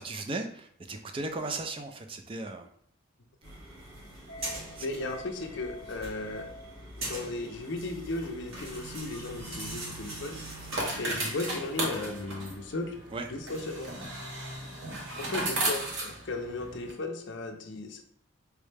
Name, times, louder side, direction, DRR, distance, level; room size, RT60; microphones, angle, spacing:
voice 1, 0.0-2.7 4.8-4.9 13.1-13.3, right 2 dB, 25° right, 6 dB, 0.3 m, -36 dB
sound 1, 3.4-11.2, right 1 dB, 85° right, 1.6 m, -41 dB
voice 2, 4.8-6.5 7.0-10.4 11.0-13.0 13.3-14.0 15.2-18.0, left 2 dB, 55° left, 5 dB, 0.5 m, -36 dB
sound 2, 9.2-16.9, right 1 dB, 65° right, 0.9 m, -36 dB
4.6 x 2.1 x 3.2 m, 0.64 s
head